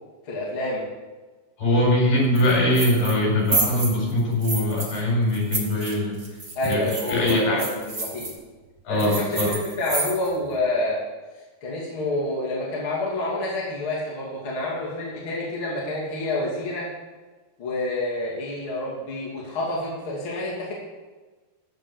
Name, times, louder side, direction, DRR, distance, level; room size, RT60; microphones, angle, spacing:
voice 1, 0.3-0.8 6.5-8.3 8.9-11.0 11.6-16.9 17.6-20.7, left 1 dB, 35° left, -6 dB, 2.9 m, -28 dB
voice 2, 1.6-6.2 6.7-7.6 8.8-9.5, left 1 dB, 60° left, -4 dB, 6.5 m, -22 dB
sound 1, 2.3-3.2 3.5-5.0 5.3-8.3 9.0-10.4, right 3 dB, 45° right, 1.0 m, -29 dB
14.5 x 5.6 x 7.1 m, 1.3 s
omnidirectional pair, 4.6 m